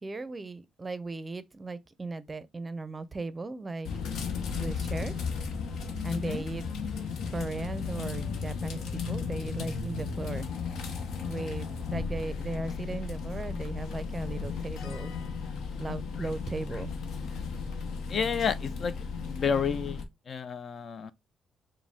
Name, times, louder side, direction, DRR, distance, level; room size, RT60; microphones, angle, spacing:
voice 1, 0.0-3.9 4.6-5.1 6.0-6.6 7.3-10.5 11.3-15.1 15.8-16.9, right 3 dB, 25° right, 0.5 m, -37 dB
sound 1, 3.8-20.0, left 5 dB, 75° left, 0.7 m, -35 dB
voice 2, 6.1-6.4 18.1-18.9 19.3-20.0 20.3-21.1, left 6 dB, 50° left, 0.4 m, -30 dB
4.9 x 2.1 x 3.4 m
cardioid pair, 90°, 0 cm